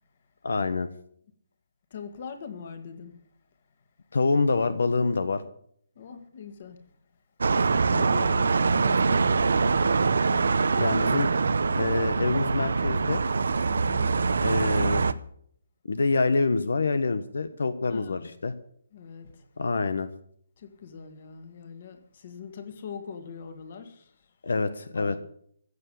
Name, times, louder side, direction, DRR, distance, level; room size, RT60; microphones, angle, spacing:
voice 1, 0.4-0.9 4.1-5.4 10.7-11.3 11.7-13.2 14.4-15.1 15.9-18.5 19.6-20.1 24.4-25.2, left 3 dB, 85° left, 1.2 m, -26 dB
voice 2, 1.9-3.2 6.0-6.8 7.5-10.5 13.7-14.2 17.9-18.3 18.9-19.5 20.6-24.3 24.9-25.2, left 6 dB, 40° left, 1.9 m, -42 dB
sound 1, 7.4-15.1, right 4 dB, 75° right, 0.8 m, -24 dB
15.5 x 7.2 x 8.5 m
hypercardioid pair, 170°, 0 cm